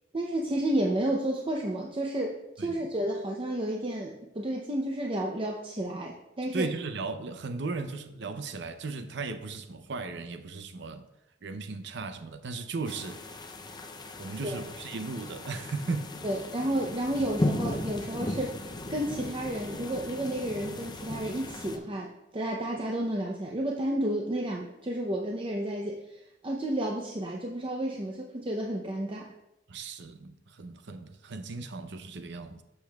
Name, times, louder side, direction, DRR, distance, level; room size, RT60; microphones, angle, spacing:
voice 1, 0.1-6.7 14.4-14.6 16.2-18.6 18.9-29.3, right 1 dB, 30° right, 0.6 m, -31 dB
voice 2, 6.5-11.0 11.4-13.2 14.2-16.1 29.7-32.6, right 3 dB, 65° right, 0.6 m, -36 dB
sound 1, 12.8-21.8, left 1 dB, 25° left, 0.6 m, -36 dB
11.5 x 6.7 x 2.3 m
head